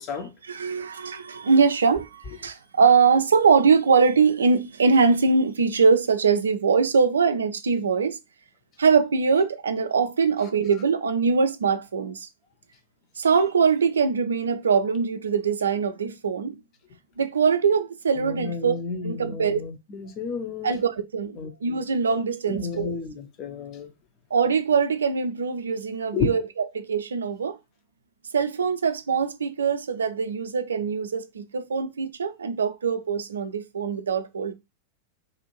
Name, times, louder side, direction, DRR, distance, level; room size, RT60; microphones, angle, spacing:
voice 1, 0.5-8.2 8.8-12.3 13.2-16.6 17.2-18.8 19.0-19.6 20.6-23.0 24.3-26.4 26.7-27.6 28.3-34.5, right 5 dB, 70° right, 0.3 m, -22 dB
voice 2, 18.2-20.8 21.4-21.5 22.5-23.9 26.1-26.3, left 5 dB, 35° left, 0.7 m, -31 dB
2.7 x 2.5 x 2.9 m
figure-of-eight pair, 90°, 0 cm